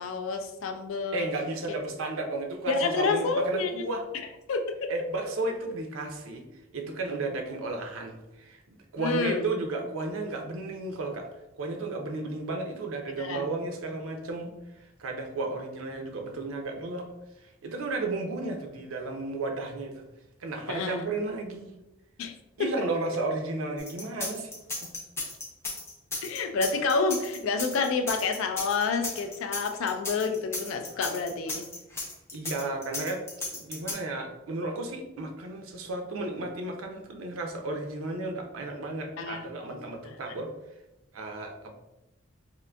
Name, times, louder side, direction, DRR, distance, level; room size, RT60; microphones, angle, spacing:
voice 1, 0.0-1.2 2.7-3.8 4.5-4.9 9.0-9.5 13.2-13.5 20.7-21.1 22.2-22.3 26.2-31.6 39.2-39.4 39.7-40.2, left 4 dB, 80° left, 6 dB, 0.4 m, -29 dB
voice 2, 1.1-4.0 4.9-6.4 6.7-11.3 11.5-14.5 15.0-17.1 17.6-20.0 20.4-21.7 22.6-24.5 24.8-24.9 32.3-33.2 33.5-40.5 41.1-41.7, right 2 dB, 85° right, 3 dB, 0.5 m, -33 dB
sound 1, 23.8-33.9, left 3 dB, 10° left, 0.5 m, -34 dB
3.6 x 2.6 x 2.2 m, 0.95 s
head